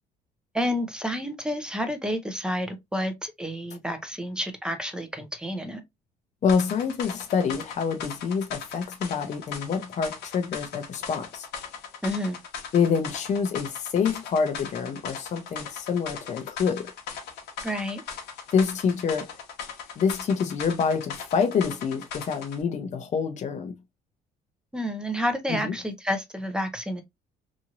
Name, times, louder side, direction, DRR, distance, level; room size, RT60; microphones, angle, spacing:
voice 1, 0.5-5.8 12.0-12.4 17.6-18.0 24.7-27.0, equal, 5° right, 0.7 m, -30 dB
voice 2, 6.4-11.5 12.7-16.9 18.5-19.4 20.0-23.7 25.5-25.7, left 6 dB, 45° left, 0.7 m, -26 dB
sound 1, 6.5-22.6, left 6 dB, 80° left, 1.0 m, -39 dB
2.9 x 2.6 x 2.5 m
cardioid pair, 110°, 17 cm